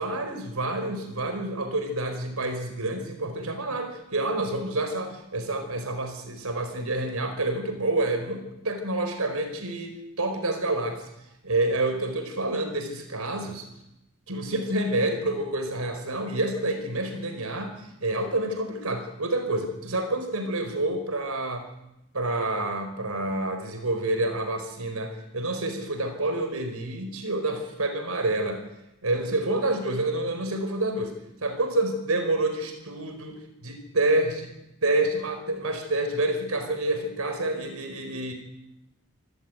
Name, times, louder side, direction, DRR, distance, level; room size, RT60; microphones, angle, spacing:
voice 1, 0.0-11.1 11.4-13.7 14.3-17.7 18.0-21.7 22.1-28.6 29.0-31.1 31.4-34.5 34.8-38.3, right 2 dB, 90° right, 7 dB, 4.8 m, -28 dB
26.0 x 14.0 x 9.2 m, 0.88 s
head